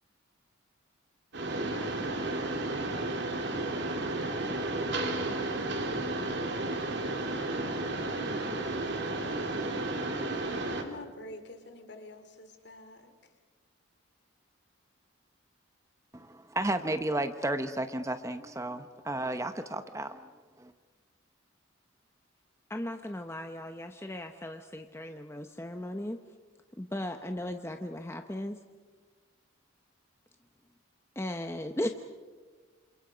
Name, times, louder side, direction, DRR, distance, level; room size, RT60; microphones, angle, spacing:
Mechanisms, 1.3-10.8, right 2 dB, 55° right, 3.2 m, -32 dB
voice 1, 10.8-13.1, left 2 dB, 55° left, 8 dB, 2.7 m, -47 dB
voice 2, 16.1-20.3 20.6-20.7, right 1 dB, 15° right, 9 dB, 0.9 m, -33 dB
voice 3, 22.7-26.2 26.8-28.6 31.2-31.9, left 1 dB, 10° left, 6 dB, 0.8 m, -36 dB
28.5 x 27.5 x 5.1 m, 1.5 s
head